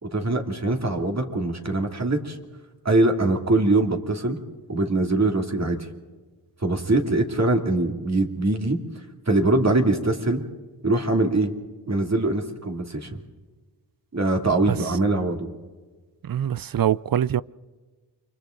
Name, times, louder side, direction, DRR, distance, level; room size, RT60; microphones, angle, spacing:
voice 1, 0.0-2.4 2.8-4.4 4.7-5.8 6.6-8.8 9.3-10.4 10.8-11.5 11.9-13.1 14.1-15.5, right 2 dB, 40° right, 2.9 m, -22 dB
voice 2, 16.3-17.4, right 10 dB, 55° right, 0.6 m, -23 dB
29.0 x 25.0 x 3.9 m
cardioid pair, 65°, 42 cm